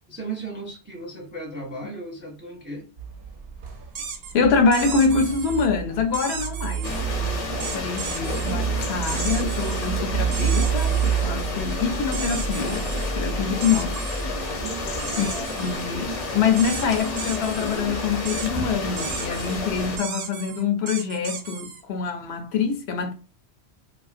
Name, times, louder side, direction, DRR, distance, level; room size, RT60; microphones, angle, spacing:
voice 1, 0.1-2.9 14.5-15.2, right 3 dB, 15° right, 0.4 m, -36 dB
sound 1, 3.0-19.0, right 7 dB, 60° right, 0.7 m, -30 dB
sound 2, 3.9-4.3 4.7-5.7 6.1-7.0 7.6-8.5 9.1-9.9 10.3-11.3 12.1-13.1 13.6-14.3 15.0-15.9 16.6-17.8 18.3-18.5 19.0-19.6 20.0-21.8, right 6 dB, 90° right, 0.9 m, -35 dB
voice 2, 4.3-14.0 15.1-23.1, left 5 dB, 75° left, 0.8 m, -25 dB
sound 3, 6.8-20.0, left 2 dB, 45° left, 0.6 m, -30 dB
3.0 x 2.5 x 2.4 m
omnidirectional pair, 1.1 m